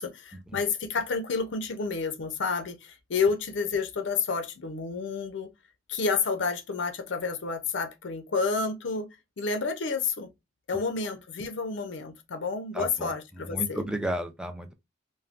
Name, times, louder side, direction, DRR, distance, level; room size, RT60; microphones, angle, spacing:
voice 1, 0.0-5.5 5.9-9.1 9.4-10.3 10.7-13.8, left 4 dB, 70° left, 0.5 m, -30 dB
voice 2, 12.7-13.1 13.5-14.7, right 1 dB, 5° right, 0.3 m, -32 dB
3.4 x 2.2 x 2.4 m
head